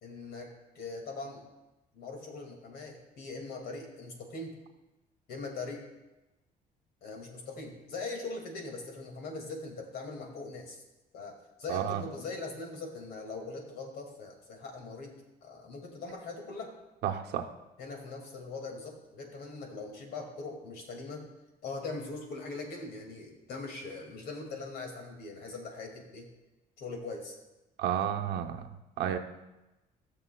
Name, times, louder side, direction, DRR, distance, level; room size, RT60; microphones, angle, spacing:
voice 1, 0.0-1.4 1.9-4.6 5.3-5.9 7.0-10.8 11.1-16.7 17.8-21.3 21.6-26.3 26.8-27.4, left 3 dB, 70° left, 2 dB, 2.3 m, -41 dB
voice 2, 11.7-12.0 17.0-17.5 27.8-28.7 29.0-29.2, right 10 dB, 80° right, 5 dB, 0.8 m, -31 dB
16.0 x 6.9 x 2.3 m, 1.0 s
cardioid pair, 110°, 17 cm